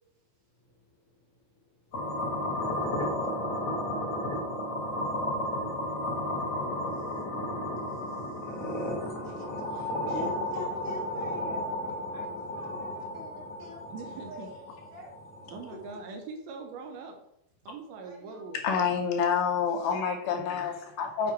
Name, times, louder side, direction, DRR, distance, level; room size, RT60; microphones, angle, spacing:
voice 1, 0.6-1.3 1.5-1.6 2.4-3.9 6.8-13.8 14.3-15.1 15.4-15.5 15.9-16.0 18.0-18.7 20.6-20.8 21.2-21.3, left 1 dB, 50° right, -7 dB, 0.7 m, -48 dB
sound 1, 1.9-15.9, left 1 dB, 60° left, 1.8 m, -33 dB
voice 2, 13.9-14.5 15.5-17.2 17.7-18.7, right 4 dB, 80° right, 4 dB, 2.4 m, -42 dB
voice 3, 18.6-21.3, left 6 dB, 75° left, 3 dB, 2.5 m, -28 dB
7.2 x 4.5 x 4.5 m, 0.80 s
omnidirectional pair, 4.9 m